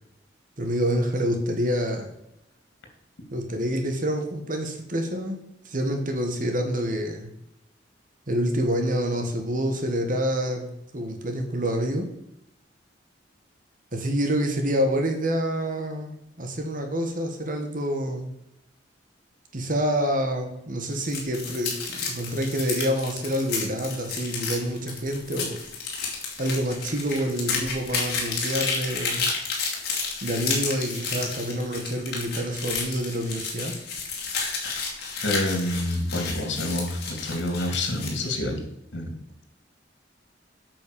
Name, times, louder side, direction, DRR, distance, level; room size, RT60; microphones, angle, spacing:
voice 1, 0.6-2.1 3.3-5.4 5.6-7.3 8.3-12.1 13.9-18.3 19.5-25.6 26.4-29.2 30.2-33.7, equal, 45° right, 4 dB, 1.6 m, -27 dB
sound 1, 20.9-38.3, left 4 dB, 60° left, 2.8 m, -31 dB
voice 2, 35.2-38.6 38.9-39.1, left 1 dB, 75° left, 3 dB, 2.7 m, -27 dB
8.6 x 6.2 x 6.9 m, 0.84 s
head